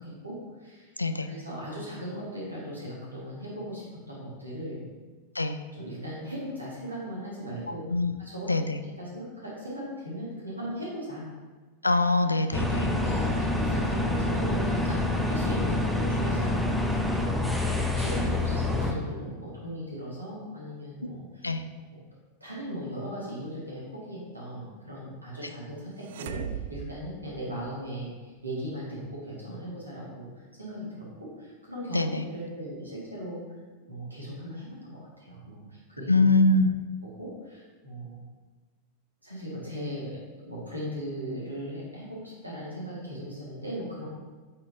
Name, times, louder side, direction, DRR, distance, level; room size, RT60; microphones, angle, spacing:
voice 1, 0.0-0.9 1.3-4.8 5.7-7.9 8.2-8.5 9.0-11.3 13.0-21.4 21.9-22.0 22.4-33.4 33.9-36.2 37.1-38.2 39.2-40.2 40.5-44.1, equal, 85° right, -6 dB, 1.9 m, -38 dB
voice 2, 1.0-1.3 5.4-5.6 7.9-8.2 8.5-8.8 11.8-12.9 21.4-21.6 31.9-32.2 36.1-36.7, left 2 dB, 80° left, 9 dB, 0.3 m, -23 dB
sound 1, 12.5-18.9, left 2 dB, ahead, 0.6 m, -27 dB
sound 2, 26.0-28.0, right 9 dB, 55° right, 0.3 m, -38 dB
8.3 x 4.4 x 2.7 m, 1.3 s
figure-of-eight pair, 90°, 0 cm